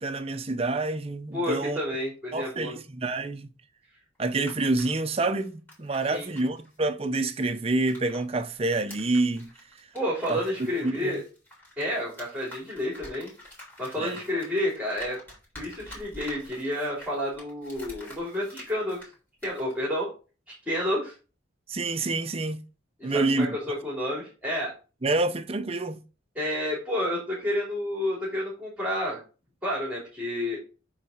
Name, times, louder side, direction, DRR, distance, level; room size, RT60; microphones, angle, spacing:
voice 1, 0.0-1.8 2.3-3.5 4.2-9.5 10.3-10.4 10.8-11.2 14.0-14.2 21.7-22.6 23.0-23.5 25.0-26.0, right 2 dB, 30° right, 0.6 m, -27 dB
voice 2, 1.3-2.7 6.1-6.3 9.9-11.2 11.8-13.3 13.8-15.2 15.6-19.1 19.4-20.1 20.6-21.2 23.0-24.7 26.3-29.2 29.6-30.6, left 1 dB, 5° right, 3.1 m, -30 dB
sound 1, 4.1-8.2 8.5-19.1 19.4-19.7, left 1 dB, 10° left, 3.7 m, -48 dB
8.8 x 4.0 x 5.0 m
head